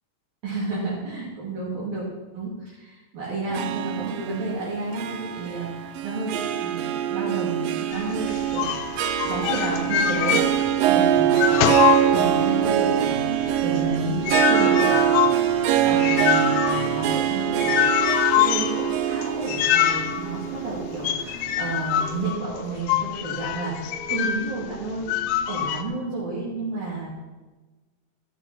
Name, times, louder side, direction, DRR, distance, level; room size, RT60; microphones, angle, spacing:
voice 1, 0.4-2.0 2.3-11.8 12.1-14.2 14.4-15.1 15.8-17.8 18.4-25.1 25.5-27.1, right 2 dB, 60° right, -8 dB, 4.7 m, -31 dB
Harp, 3.5-22.0, right 10 dB, 80° right, 2.1 m, -24 dB
sound 1, 7.9-10.9 11.2-12.7 13.0-24.5 25.1-25.8, left 11 dB, 75° left, 2.2 m, -25 dB
sound 2, 9.7-25.7, equal, 25° right, 1.5 m, -44 dB
13.5 x 13.0 x 4.4 m, 1.2 s
omnidirectional pair, 4.6 m